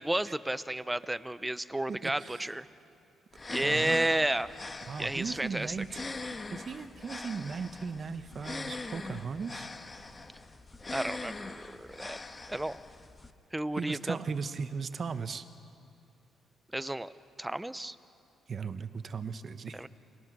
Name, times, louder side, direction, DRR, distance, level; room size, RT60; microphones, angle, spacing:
voice 1, 0.0-2.7 3.5-4.5 5.0-5.7 10.9-12.2 12.5-12.8 13.5-14.2 16.7-17.1 17.4-18.0 19.7-19.9, right 1 dB, 10° right, 15 dB, 0.7 m, -32 dB
voice 2, 1.9-2.4 3.6-4.0 4.9-6.0 6.5-9.7 13.8-15.4 18.5-19.8, right 5 dB, 45° right, 11 dB, 1.1 m, -37 dB
sound 1, 3.3-13.3, left 3 dB, 25° left, 1.3 m, -42 dB
29.0 x 21.5 x 6.3 m, 2.5 s
cardioid pair, 90°, 0 cm